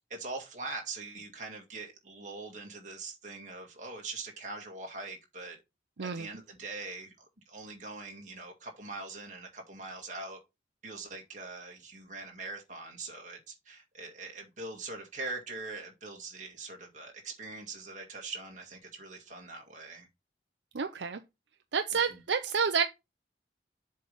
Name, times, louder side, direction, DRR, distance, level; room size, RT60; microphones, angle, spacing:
voice 1, 0.1-5.6 6.0-10.4 10.8-20.1 22.1-22.2, right 3 dB, 40° right, 2.1 m, -42 dB
voice 2, 20.7-21.2 21.7-22.8, right 6 dB, 75° right, 0.6 m, -29 dB
7.5 x 3.3 x 5.4 m
head